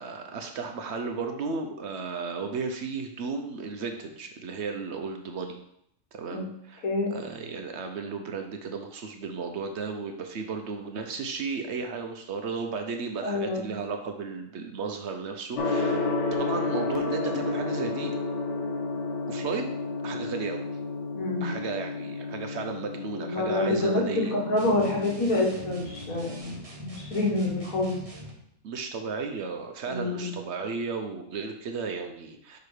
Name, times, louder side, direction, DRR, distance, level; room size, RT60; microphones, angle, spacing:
voice 1, 0.0-5.6 6.1-6.8 7.1-16.1 16.4-18.2 19.3-19.7 20.0-20.6 21.4-24.4 28.6-32.6, right 4 dB, 60° right, 5 dB, 0.9 m, -34 dB
voice 2, 6.8-7.2 13.2-13.6 21.2-21.5 23.2-28.0 29.9-30.3, left 2 dB, 90° left, -2 dB, 1.9 m, -27 dB
Gong, 15.6-26.4, left 3 dB, 60° left, 1.1 m, -32 dB
sound 1, 24.6-28.4, equal, 30° right, 0.9 m, -43 dB
5.1 x 4.7 x 4.8 m, 0.75 s
omnidirectional pair, 1.4 m